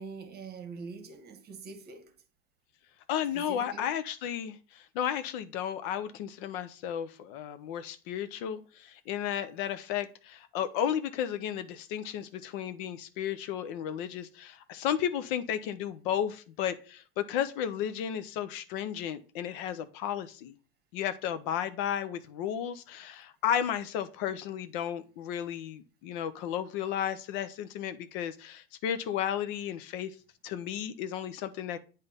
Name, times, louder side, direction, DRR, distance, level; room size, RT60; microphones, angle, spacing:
voice 1, 0.0-2.1 3.3-3.9, right 4 dB, 35° right, 1.2 m, -44 dB
voice 2, 3.1-20.6 20.9-30.1 30.4-31.8, left 9 dB, 65° left, 0.7 m, -33 dB
8.0 x 2.8 x 5.1 m
hypercardioid pair, 95°, 30 cm